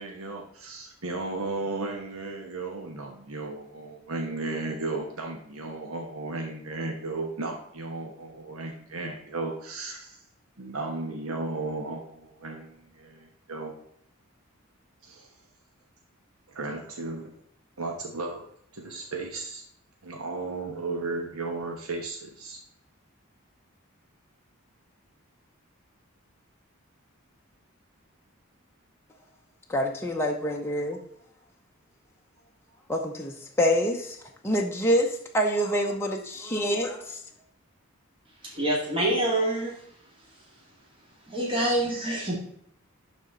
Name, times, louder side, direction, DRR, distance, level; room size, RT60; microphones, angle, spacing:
voice 1, 0.0-10.2 10.6-13.7 15.0-15.3 16.5-17.4 17.8-18.5 18.7-19.6 20.0-22.6, right 3 dB, 80° right, 2 dB, 1.1 m, -35 dB
voice 2, 29.7-31.0 32.9-34.2 34.4-37.2, equal, 10° left, 0 dB, 0.7 m, -26 dB
voice 3, 38.4-39.7 41.3-42.3, right 1 dB, 25° right, -5 dB, 2.2 m, -26 dB
11.0 x 4.2 x 3.9 m, 0.69 s
head